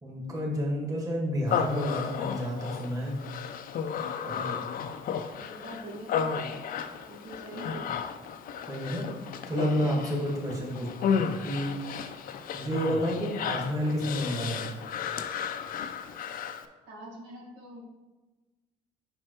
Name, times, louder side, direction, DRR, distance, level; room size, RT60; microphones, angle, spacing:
voice 1, 0.0-3.2 4.2-4.7 8.7-9.2 9.5-11.8 12.5-14.7, equal, 20° right, -3 dB, 1.7 m, -30 dB
Human voice, 1.5-16.7, left 7 dB, 55° left, 0.5 m, -33 dB
voice 2, 5.4-6.7 7.1-7.9 10.8-11.1 13.2-13.3 16.9-17.8, right 1 dB, 85° right, -4 dB, 1.8 m, -44 dB
7.4 x 5.4 x 3.1 m, 1.2 s
cardioid pair, 110°, 17 cm